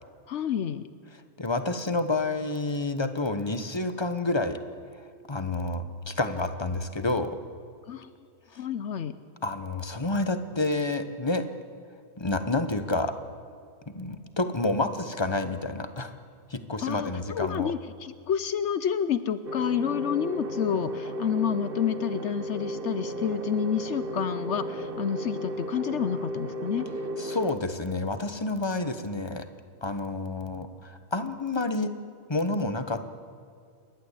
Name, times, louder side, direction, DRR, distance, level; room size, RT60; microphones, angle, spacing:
voice 1, 0.3-0.9 7.9-8.1 8.6-9.1 16.8-26.9, left 8 dB, 65° left, 13 dB, 0.9 m, -29 dB
voice 2, 1.4-4.6 5.3-7.4 8.5-8.6 9.4-11.4 12.2-13.1 13.9-16.1 16.5-17.7 27.2-29.4 29.8-31.9 32.3-33.1, left 2 dB, 20° left, 9 dB, 1.0 m, -29 dB
sound 1, 19.5-27.5, right 1 dB, 45° right, 1.4 m, -34 dB
28.5 x 12.0 x 8.3 m, 2.3 s
omnidirectional pair, 1.4 m